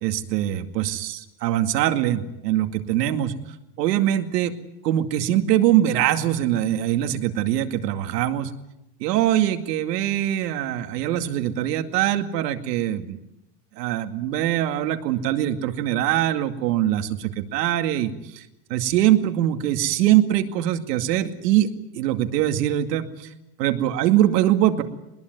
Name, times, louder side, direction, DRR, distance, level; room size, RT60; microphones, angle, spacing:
voice 1, 0.0-3.3 3.8-4.5 4.8-8.5 9.0-13.2 13.8-23.3 23.6-24.8, right 12 dB, 80° right, 7 dB, 2.4 m, -23 dB
22.0 x 20.5 x 9.4 m, 0.89 s
supercardioid pair, 165°, 48 cm